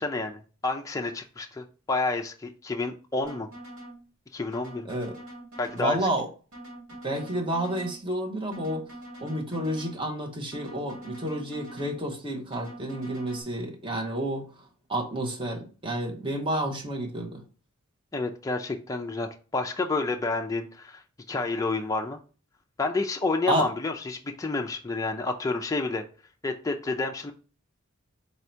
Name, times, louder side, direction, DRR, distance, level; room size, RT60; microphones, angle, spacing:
voice 1, 0.0-3.5 4.3-4.9 5.6-6.0 18.1-21.0 21.3-22.2 22.8-26.0 26.4-27.3, left 3 dB, 15° left, 0.4 m, -29 dB
sound 1, 3.2-4.0 4.5-6.0 6.5-8.0 8.5-10.0 10.5-12.0 12.5-13.4, right 1 dB, 85° right, 2.4 m, -44 dB
voice 2, 5.8-6.3 7.0-8.8 9.2-14.4 14.9-17.4 23.5-23.7, right 1 dB, 25° right, 0.8 m, -30 dB
4.1 x 2.7 x 4.4 m
head